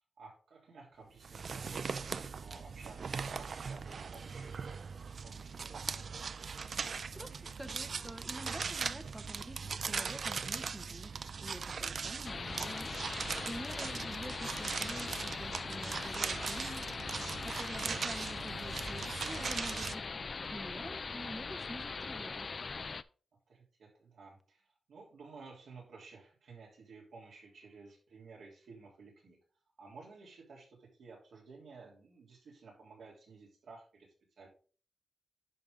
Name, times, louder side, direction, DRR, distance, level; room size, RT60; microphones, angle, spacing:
voice 1, 0.2-4.9 5.2-6.1 13.7-13.8 22.2-22.4 23.5-29.4 29.8-34.5, right 4 dB, 80° right, -1 dB, 3.2 m, -54 dB
sound 1, 1.2-19.9, right 5 dB, 50° right, 0.3 m, -40 dB
voice 2, 7.1-12.9 13.4-22.5, equal, 5° right, 8 dB, 0.6 m, -47 dB
sound 2, 12.2-23.0, left 4 dB, 40° left, 0.3 m, -41 dB
10.5 x 5.4 x 3.6 m, 0.40 s
wide cardioid pair, 150°, 0 cm